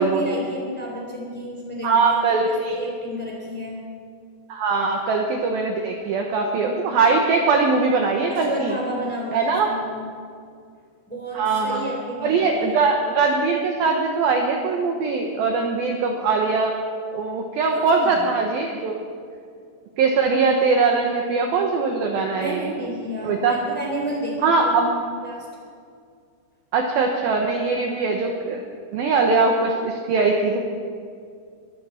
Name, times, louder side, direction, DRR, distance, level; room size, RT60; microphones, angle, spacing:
voice 1, 0.0-3.8 8.3-10.1 11.1-12.8 17.7-18.3 22.3-25.5, equal, 5° left, -2 dB, 2.7 m, -31 dB
voice 2, 1.8-2.8 4.5-8.8 9.3-9.7 11.3-11.9 12.2-16.7 17.1-19.0 20.0-22.7 23.2-23.6 24.4-24.9 26.7-28.6 28.9-30.6, right 4 dB, 70° right, 2 dB, 2.4 m, -21 dB
24.0 x 13.0 x 4.4 m, 2.2 s
omnidirectional pair, 5.5 m